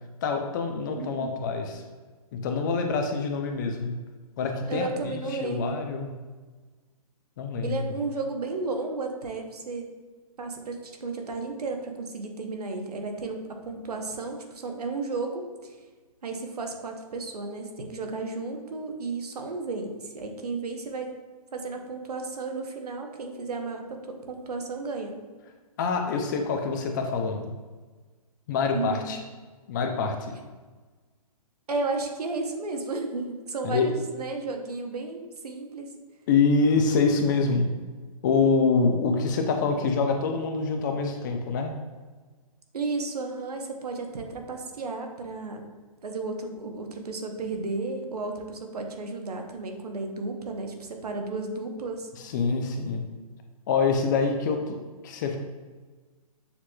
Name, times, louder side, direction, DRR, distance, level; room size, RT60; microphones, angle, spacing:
voice 1, 0.2-1.8 2.3-4.0 4.4-6.1 7.4-7.8 25.8-27.5 28.5-29.2 29.7-30.3 33.6-33.9 36.3-37.7 38.2-41.7 52.2-53.0 53.7-54.8 55.0-55.4, left 4 dB, 30° left, 4 dB, 0.4 m, -25 dB
voice 2, 0.9-1.4 4.7-5.9 7.6-9.9 10.4-15.8 16.2-21.1 21.5-25.2 28.7-29.1 31.7-36.0 42.7-45.7 46.0-52.1, right 3 dB, 85° right, 4 dB, 0.8 m, -33 dB
6.6 x 3.0 x 2.2 m, 1.4 s
hypercardioid pair, 145°, 19 cm